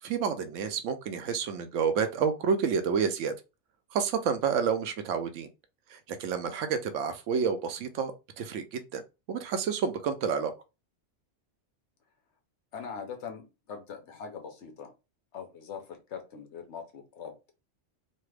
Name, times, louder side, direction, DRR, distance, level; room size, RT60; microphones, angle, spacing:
voice 1, 0.0-3.3 3.9-5.5 5.9-9.0 9.3-10.5, right 6 dB, 80° right, 0.9 m, -29 dB
voice 2, 12.7-14.9 15.3-17.3, left 6 dB, 70° left, 1.0 m, -42 dB
3.2 x 2.0 x 3.2 m
omnidirectional pair, 1.3 m